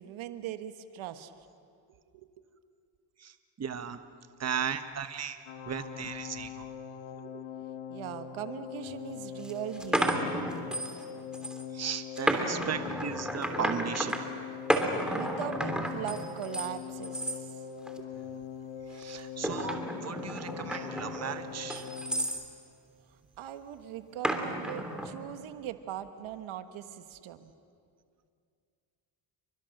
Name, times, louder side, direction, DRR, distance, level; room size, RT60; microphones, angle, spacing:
voice 1, 0.0-1.3 2.1-2.3 7.1-10.4 15.1-17.5 18.0-18.1 23.4-27.5, right 10 dB, 75° right, 9 dB, 1.5 m, -40 dB
voice 2, 3.6-4.0 4.4-5.4 5.7-6.6 11.7-14.1 18.9-21.8, right 7 dB, 30° right, 9 dB, 1.3 m, -36 dB
sound 1, 5.5-22.3, left 8 dB, 75° left, 1.8 m, -42 dB
sound 2, 8.8-8.9 9.4-11.0 11.3-11.6 12.2-14.2 14.7-16.7 17.0-17.4 17.9-18.2 19.0-22.4 24.2-25.1, equal, ahead, 3.1 m, -32 dB
29.5 x 24.0 x 6.6 m, 2.3 s
cardioid pair, 95°, 48 cm